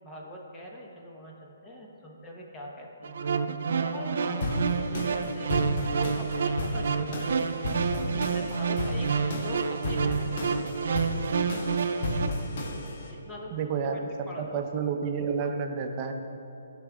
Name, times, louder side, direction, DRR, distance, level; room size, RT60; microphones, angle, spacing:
voice 1, 0.0-3.1 3.6-4.6 4.9-5.6 5.9-7.6 8.0-10.8 13.1-13.5 13.9-14.0 14.3-14.7, left 1 dB, 15° left, -2 dB, 1.0 m, -43 dB
sound 1, 3.0-12.3, right 5 dB, 65° right, 0.4 m, -29 dB
sound 2, 4.4-13.1, left 1 dB, 50° left, 1.2 m, -33 dB
voice 2, 13.5-14.0 14.4-16.1, right 6 dB, 30° right, 4 dB, 0.7 m, -30 dB
13.0 x 6.1 x 2.3 m, 2.9 s
hypercardioid pair, 140°, 0 cm